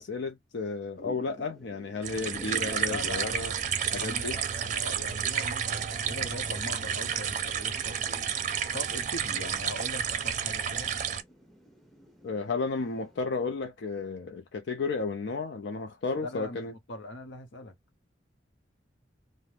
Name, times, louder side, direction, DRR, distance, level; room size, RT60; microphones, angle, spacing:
voice 1, 0.0-3.5 3.9-4.4 12.2-16.7, left 4 dB, 70° left, 0.5 m, -33 dB
Thunder / Rain, 1.0-13.2, right 1 dB, ahead, 0.6 m, -52 dB
sound 1, 2.0-11.2, right 8 dB, 40° right, 0.5 m, -31 dB
voice 2, 2.9-3.4 3.9-8.3 8.7-10.9 16.2-17.7, left 2 dB, 90° left, 0.8 m, -41 dB
2.6 x 2.0 x 3.1 m
head